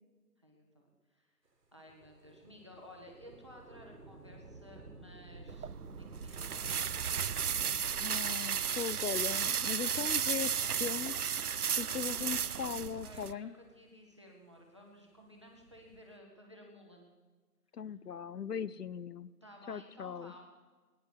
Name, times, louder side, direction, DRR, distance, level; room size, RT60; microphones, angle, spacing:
voice 1, 0.4-1.4 1.7-5.7 6.0-6.7 11.9-12.7 13.0-17.1 17.9-18.0 19.4-20.4, left 1 dB, 20° right, 0 dB, 1.2 m, -55 dB
Thunder / Rain, 1.9-10.8 11.6-11.7 12.6-13.9 15.4-16.2, right 2 dB, 85° right, 2.1 m, -52 dB
sound 1, 5.5-13.3, right 8 dB, 70° right, 0.5 m, -34 dB
voice 2, 8.0-11.3 11.8-13.5 17.7-19.3 19.7-20.3, left 7 dB, 75° left, 18 dB, 0.7 m, -39 dB
Thump thud, 9.6-10.1 11.9-12.6, left 1 dB, 5° left, 2.0 m, -62 dB
21.5 x 10.0 x 6.0 m, 1.4 s
figure-of-eight pair, 175°, 48 cm